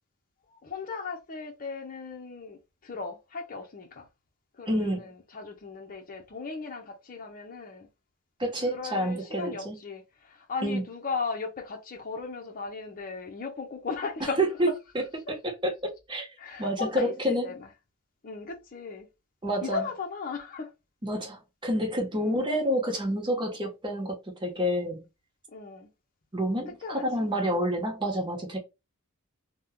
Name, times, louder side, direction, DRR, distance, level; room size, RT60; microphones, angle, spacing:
voice 1, 0.5-4.1 4.6-7.9 8.6-14.4 16.4-17.7 18.2-19.1 19.6-20.7 22.2-22.5 25.5-25.9 26.8-27.0, left 4 dB, 40° left, 0.6 m, -37 dB
voice 2, 4.7-5.1 8.4-9.8 10.6-10.8 14.2-14.7 15.6-16.3 16.6-17.5 19.4-19.8 21.0-25.0 26.3-28.6, equal, 20° right, 1.0 m, -28 dB
2.8 x 2.2 x 3.5 m
head